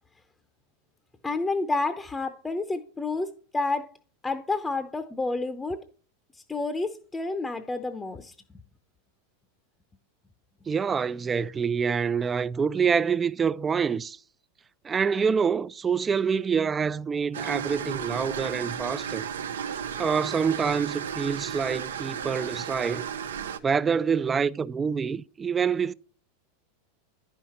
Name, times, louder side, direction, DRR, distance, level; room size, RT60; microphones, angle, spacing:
voice 1, 1.2-3.9 4.2-5.8 6.5-8.3, left 3 dB, 10° left, 0.7 m, -29 dB
voice 2, 10.7-14.2 14.8-19.2 20.0-23.0 23.6-25.9, right 6 dB, 20° right, 0.3 m, -26 dB
sound 1, 17.3-23.6, right 8 dB, 85° right, 0.6 m, -34 dB
9.9 x 5.8 x 4.2 m
hypercardioid pair, 110°, 0 cm